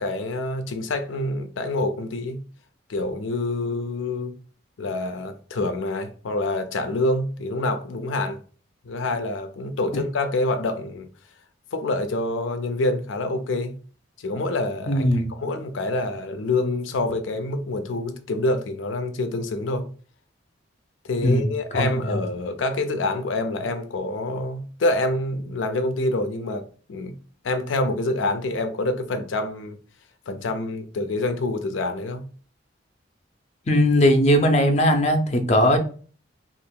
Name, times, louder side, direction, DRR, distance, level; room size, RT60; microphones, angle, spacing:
voice 1, 0.0-2.4 2.9-4.3 4.8-8.4 8.8-11.1 11.7-13.8 14.2-19.9 21.1-27.1 27.4-29.8 30.3-32.3, left 2 dB, 90° left, 0.5 m, -26 dB
voice 2, 14.9-15.3 21.2-21.5 21.7-22.2 33.7-35.8, equal, 35° left, 0.5 m, -19 dB
2.8 x 2.5 x 3.6 m
head